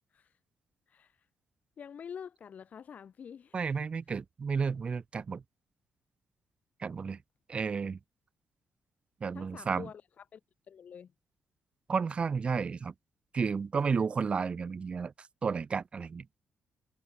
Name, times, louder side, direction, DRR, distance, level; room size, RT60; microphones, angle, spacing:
voice 1, 0.9-1.3 1.8-3.8 9.3-10.4 10.7-11.1, left 7 dB, 50° left, 2.3 m, -47 dB
voice 2, 3.5-5.4 6.8-7.2 7.5-8.0 9.2-9.9 11.9-12.9 13.3-15.1 15.4-16.2, right 5 dB, 35° right, 0.8 m, -32 dB
cardioid pair, 135°, 3 cm